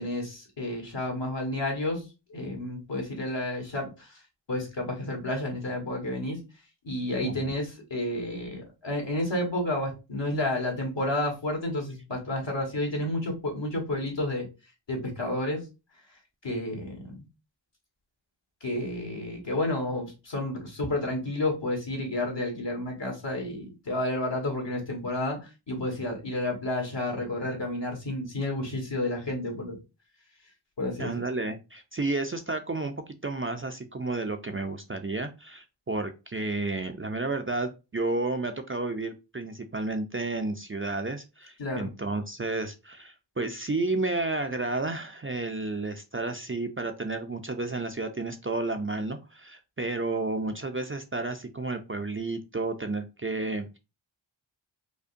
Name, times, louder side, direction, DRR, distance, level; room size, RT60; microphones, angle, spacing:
voice 1, 0.0-2.0 2.3-4.2 4.5-6.4 6.8-14.5 14.9-15.6 16.4-17.2 18.6-29.8 30.8-31.1 41.6-41.9, left 1 dB, 65° left, 1 dB, 1.4 m, -31 dB
voice 2, 7.2-7.5 31.0-32.9 33.2-53.8, right 2 dB, 30° right, 6 dB, 0.4 m, -31 dB
5.1 x 2.1 x 2.5 m, 0.28 s
wide cardioid pair, 40°, 47 cm